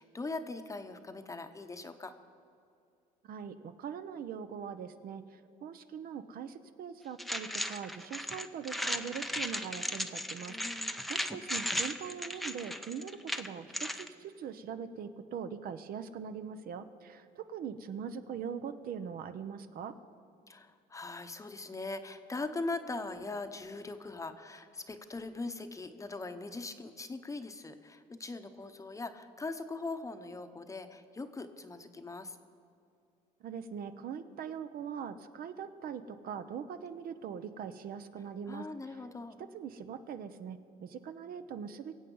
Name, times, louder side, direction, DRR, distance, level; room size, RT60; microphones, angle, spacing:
voice 1, 0.0-2.1 10.4-11.0 20.5-32.4 38.5-39.4, left 3 dB, 20° left, 8 dB, 0.9 m, -41 dB
voice 2, 3.2-19.9 33.4-38.7 39.4-42.0, right 7 dB, 60° right, 10 dB, 0.8 m, -42 dB
sound 1, 7.2-14.1, equal, ahead, 0.6 m, -36 dB
23.0 x 7.9 x 5.5 m, 2.4 s
cardioid pair, 110°, 17 cm